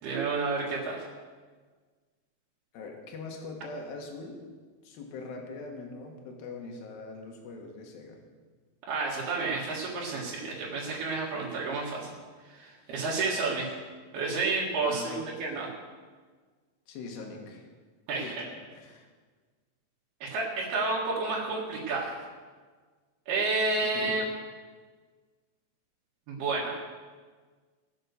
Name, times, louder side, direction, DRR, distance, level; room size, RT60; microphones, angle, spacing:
voice 1, 0.0-1.1 8.9-12.1 12.5-13.7 14.1-15.7 18.1-18.4 20.2-22.2 23.3-24.2 26.3-26.8, right 3 dB, 80° right, -4 dB, 3.9 m, -30 dB
voice 2, 2.7-4.4 4.8-8.2 12.8-13.0 14.8-15.3 16.9-17.7 18.2-19.1 23.9-24.2, left 3 dB, 70° left, 2 dB, 3.4 m, -42 dB
18.5 x 6.6 x 6.7 m, 1.5 s
omnidirectional pair, 4.4 m